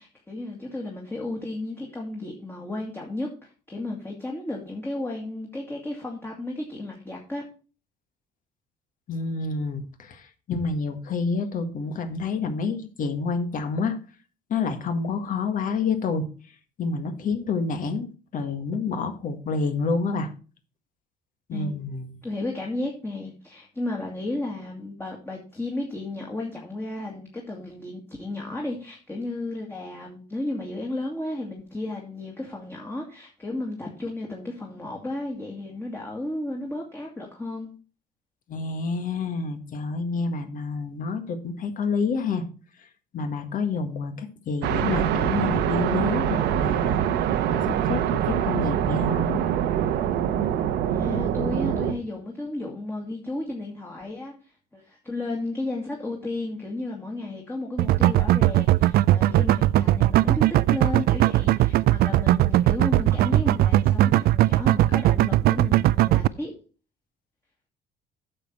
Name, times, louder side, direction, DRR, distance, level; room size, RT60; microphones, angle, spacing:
voice 1, 0.0-7.5 21.5-21.8 22.2-37.7 50.8-66.5, left 2 dB, 15° left, -1 dB, 2.1 m, -33 dB
voice 2, 9.1-14.0 14.5-16.3 16.8-20.3 21.5-22.2 38.5-42.4 43.1-47.0 47.5-49.4, left 4 dB, 55° left, 8 dB, 1.8 m, -28 dB
sound 1, 44.6-51.9, right 10 dB, 85° right, 1.1 m, -24 dB
sound 2, 57.8-66.3, right 15 dB, 65° right, 0.4 m, -19 dB
8.8 x 6.8 x 4.4 m, 0.37 s
cardioid pair, 110°, 17 cm